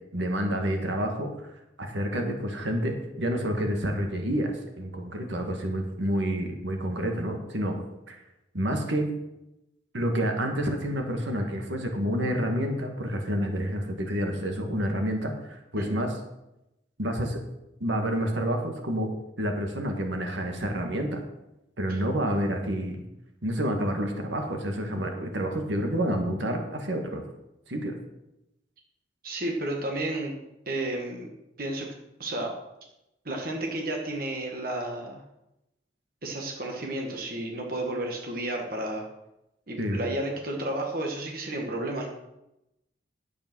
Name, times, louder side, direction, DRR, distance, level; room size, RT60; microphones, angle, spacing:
voice 1, 0.1-1.3 1.8-7.8 8.1-8.2 8.5-9.1 9.9-16.1 17.0-17.4 17.8-19.1 19.4-21.2 21.8-23.0 23.4-27.2 27.7-27.9 39.8-40.0, equal, 75° right, 4 dB, 1.8 m, -29 dB
voice 2, 29.2-30.3 30.6-31.3 31.6-31.9 32.2-32.5 33.2-35.2 36.2-39.0 39.7-42.1, right 1 dB, 50° right, 1 dB, 1.7 m, -32 dB
9.8 x 8.6 x 6.2 m, 0.90 s
head